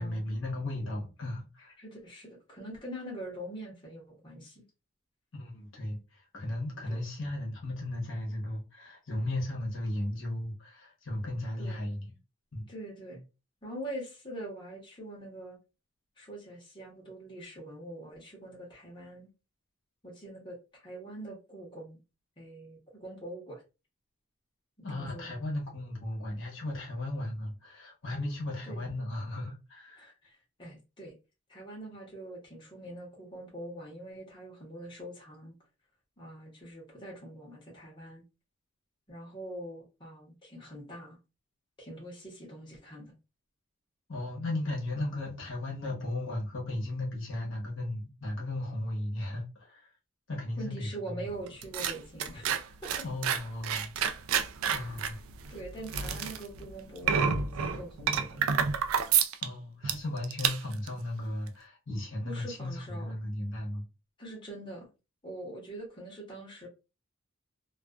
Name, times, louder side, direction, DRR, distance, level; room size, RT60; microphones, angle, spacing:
voice 1, 0.0-1.7 5.3-12.1 12.5-12.7 24.8-30.1 44.1-49.9 50.3-51.2 53.0-53.9 54.7-55.2 59.4-63.8, left 1 dB, 65° left, 0.9 m, -36 dB
voice 2, 1.8-4.7 6.9-7.0 11.6-11.9 12.7-13.3 13.6-15.6 16.2-19.3 20.0-22.0 22.4-23.6 24.8-25.5 28.6-28.8 30.0-31.1 31.5-35.5 36.2-38.2 39.1-41.2 41.8-43.1 50.6-53.0 54.7-55.0 55.5-58.5 62.2-63.1 64.2-64.9 65.2-66.7, right 1 dB, 25° left, 0.9 m, -44 dB
sound 1, 51.3-59.5 59.8-60.0 60.2-60.9 61.5-61.6, right 7 dB, 90° right, 0.3 m, -29 dB
2.4 x 2.3 x 2.3 m
head